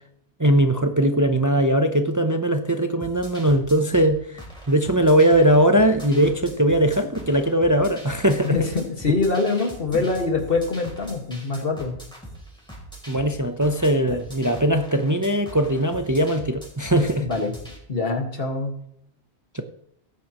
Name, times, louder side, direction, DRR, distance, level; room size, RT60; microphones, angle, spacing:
voice 1, 0.4-8.6 9.1-9.2 13.1-17.3 19.5-19.6, right 1 dB, 20° right, 0.6 m, -20 dB
sound 1, 3.0-17.8, right 1 dB, 5° left, 3.4 m, -42 dB
voice 2, 8.4-12.0 14.1-14.2 17.3-17.5 17.9-18.7, left 3 dB, 55° left, 2.0 m, -24 dB
17.5 x 9.1 x 3.0 m
omnidirectional pair, 1.2 m